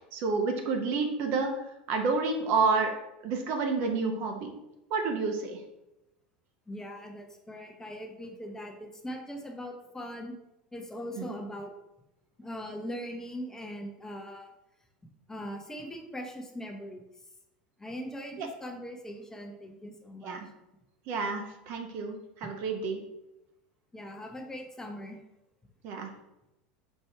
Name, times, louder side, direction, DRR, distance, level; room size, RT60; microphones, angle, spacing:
voice 1, 0.0-1.5 1.9-2.9 3.2-4.5 4.9-5.6 11.2-11.3 18.4-18.5 20.2-20.5 21.1-23.0 25.8-26.1, right 4 dB, 55° right, 4 dB, 0.9 m, -29 dB
voice 2, 6.7-10.3 10.7-11.7 12.4-14.5 15.3-17.0 17.8-20.4 23.9-25.2, equal, 10° left, 2 dB, 0.8 m, -40 dB
4.5 x 2.6 x 4.4 m, 0.92 s
hypercardioid pair, 95°, 5 cm